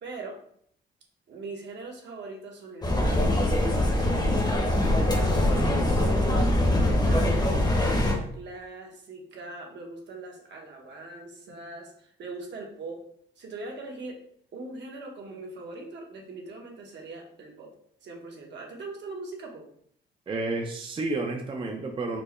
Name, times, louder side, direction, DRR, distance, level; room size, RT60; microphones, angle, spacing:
voice 1, 0.0-0.4 1.3-4.3 4.8-6.5 6.8-13.0 13.4-14.2 14.5-17.7 18.0-19.7, right 2 dB, 65° right, 1 dB, 1.0 m, -40 dB
sound 1, 2.8-8.1, left 1 dB, 20° left, 0.7 m, -23 dB
voice 2, 20.3-22.2, right 2 dB, 25° right, 2 dB, 0.5 m, -31 dB
4.5 x 2.1 x 3.0 m, 0.63 s
cardioid pair, 90°, 20 cm